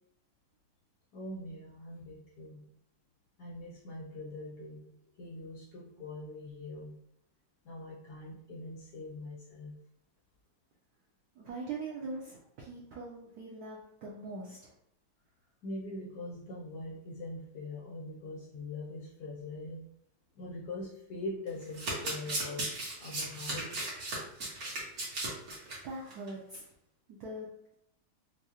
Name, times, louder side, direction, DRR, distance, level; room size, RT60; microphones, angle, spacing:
voice 1, 1.1-2.7 3.4-7.0 7.6-9.8 15.6-19.9 20.3-23.7, left 2 dB, 70° left, -4 dB, 0.9 m, -43 dB
voice 2, 11.4-14.7 25.8-26.7 27.1-27.5, right 3 dB, 75° right, -4 dB, 0.9 m, -42 dB
Domestic sounds home sounds, 21.5-25.8 26.1-26.3 26.5-26.6, right 2 dB, 50° right, 1.4 m, -36 dB
4.6 x 2.0 x 2.8 m, 0.73 s
omnidirectional pair, 2.3 m